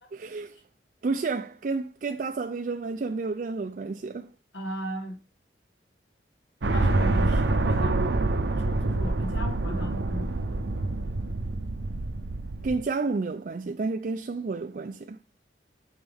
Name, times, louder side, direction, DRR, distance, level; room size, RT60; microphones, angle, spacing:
voice 1, 0.1-0.6 1.0-4.3 12.6-15.2, right 3 dB, 50° right, 0.4 m, -30 dB
voice 2, 4.5-5.2 6.7-10.9, left 1 dB, 90° left, 1.4 m, -37 dB
sound 1, 6.6-12.8, right 2 dB, 80° right, 0.7 m, -26 dB
7.1 x 5.5 x 3.5 m
head